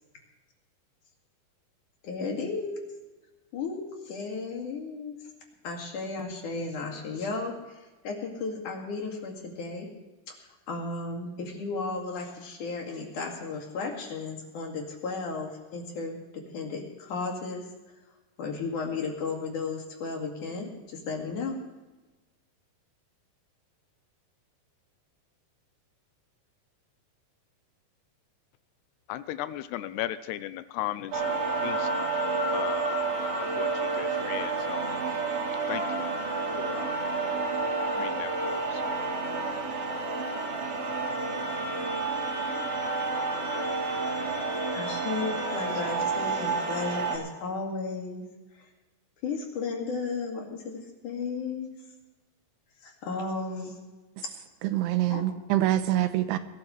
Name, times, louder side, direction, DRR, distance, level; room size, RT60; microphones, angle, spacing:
voice 1, 2.0-2.9 3.5-5.2 5.6-9.9 10.7-17.6 18.4-21.6 44.7-48.2 49.2-51.7 52.8-53.8 55.1-55.2, left 4 dB, 55° left, 3.4 m, -34 dB
voice 2, 29.1-32.1 32.5-33.0 33.4-35.2 35.7-36.1 36.6-37.0 38.0-38.8, left 13 dB, 80° left, 2.6 m, -37 dB
sound 1, 31.1-47.2, right 3 dB, 70° right, 4.1 m, -30 dB
voice 3, 54.6-56.4, right 14 dB, 85° right, 2.8 m, -25 dB
21.5 x 13.5 x 3.2 m
omnidirectional pair, 4.9 m